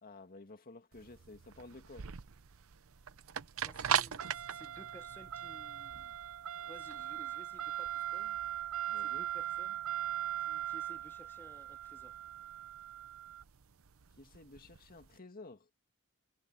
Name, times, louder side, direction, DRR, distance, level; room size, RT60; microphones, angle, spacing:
voice 1, 0.0-2.1 8.9-9.3 14.2-15.7, left 2 dB, 40° left, 2.0 m, -53 dB
sound 1, 0.9-15.1, right 10 dB, 65° right, 0.7 m, -39 dB
voice 2, 3.6-6.1 6.6-8.4 9.0-9.8 10.4-12.2, left 1 dB, 10° left, 1.9 m, -57 dB
head